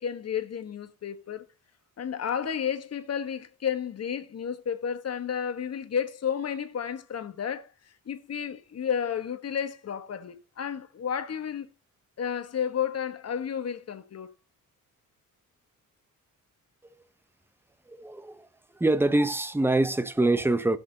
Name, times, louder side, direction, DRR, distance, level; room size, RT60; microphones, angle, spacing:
voice 1, 0.0-1.4 2.0-7.7 8.1-11.7 12.2-14.3, left 8 dB, 45° left, 1.3 m, -32 dB
voice 2, 17.9-18.5 18.7-20.8, right 2 dB, 5° right, 0.8 m, -24 dB
16.5 x 6.5 x 2.8 m
cardioid pair, 115°, 34 cm